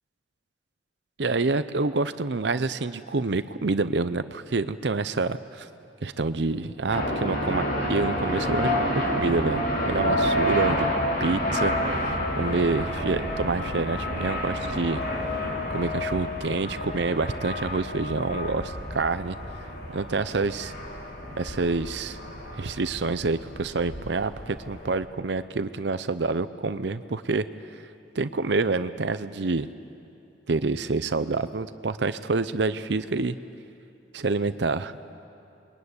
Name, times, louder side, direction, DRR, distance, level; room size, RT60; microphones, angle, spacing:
voice 1, 1.2-5.7 6.0-7.6 7.9-10.9 11.2-11.7 12.0-15.0 15.7-19.4 19.9-20.7 21.4-22.2 22.6-27.4 28.1-29.7 30.5-33.4 34.1-35.0, right 3 dB, 65° right, 12 dB, 0.7 m, -27 dB
sound 1, 6.9-25.0, equal, 55° left, 4.3 m, -29 dB
27.5 x 22.5 x 9.6 m, 2.7 s
head